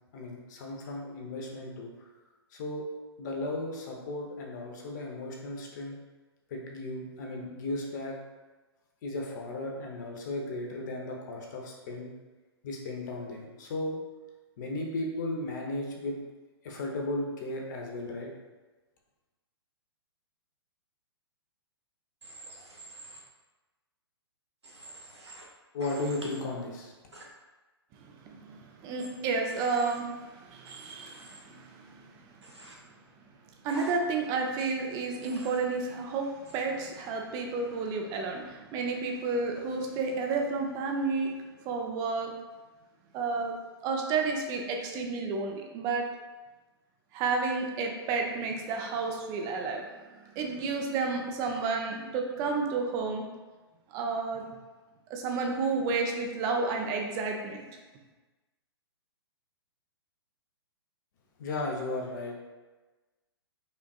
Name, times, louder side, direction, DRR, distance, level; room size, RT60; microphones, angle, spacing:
voice 1, 0.1-2.1 2.5-2.9 3.2-6.0 6.5-8.2 9.0-12.1 12.6-14.0 14.6-16.2 16.6-18.3 25.7-26.9 61.4-62.3, left 2 dB, 45° left, 0 dB, 0.8 m, -35 dB
Human voice / Train, 22.2-23.2 24.6-25.4 25.8-26.4 27.1-27.2 29.0-29.1 29.5-30.0 30.6-31.4 32.4-32.7 33.7-33.9 35.2-35.6 36.4-36.6, right 2 dB, 80° right, 0.8 m, -47 dB
voice 2, 28.0-32.1 33.6-42.3 43.1-43.5 43.8-46.1 47.1-53.2 53.9-54.4 55.1-57.7, right 4 dB, 25° right, 2 dB, 0.5 m, -31 dB
5.2 x 2.5 x 2.3 m, 1.2 s
figure-of-eight pair, 120°, 14 cm